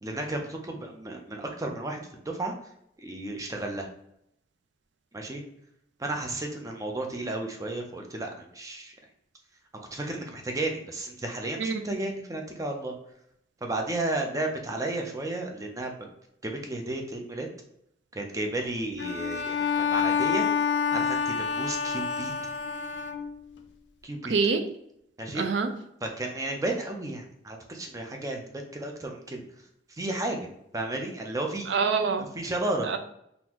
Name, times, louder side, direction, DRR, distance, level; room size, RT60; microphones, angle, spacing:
voice 1, 0.0-2.5 3.0-3.9 5.1-5.4 6.0-8.9 9.7-12.9 13.6-16.1 16.4-17.5 18.1-20.5 20.9-22.3 24.0-24.3 25.2-25.5 26.0-29.4 29.9-30.4 30.7-31.7 32.2-32.9, right 2 dB, 20° right, 2 dB, 0.5 m, -33 dB
Bowed string instrument, 19.0-23.6, left 6 dB, 70° left, 0.4 m, -28 dB
voice 2, 24.3-24.6 25.3-25.7 31.7-32.3 32.9-33.0, right 5 dB, 75° right, 7 dB, 0.4 m, -25 dB
3.8 x 2.5 x 2.9 m, 0.75 s
head